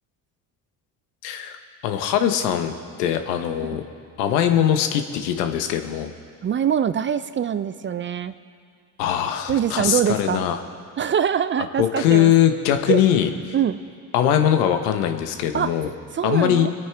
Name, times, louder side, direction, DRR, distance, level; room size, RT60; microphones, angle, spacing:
voice 1, 1.2-1.6 1.8-2.7 3.0-3.8 4.2-6.1 9.0-10.6 11.8-13.3 14.1-15.9 16.2-16.7, left 10 dB, 85° left, 7 dB, 1.0 m, -21 dB
voice 2, 6.4-8.3 9.5-10.5 11.0-12.3 12.9-13.0 13.5-13.8 15.5-15.7 16.1-16.7, right 8 dB, 30° right, 13 dB, 0.4 m, -23 dB
24.0 x 8.9 x 3.4 m, 2.2 s
supercardioid pair, 75°, 46 cm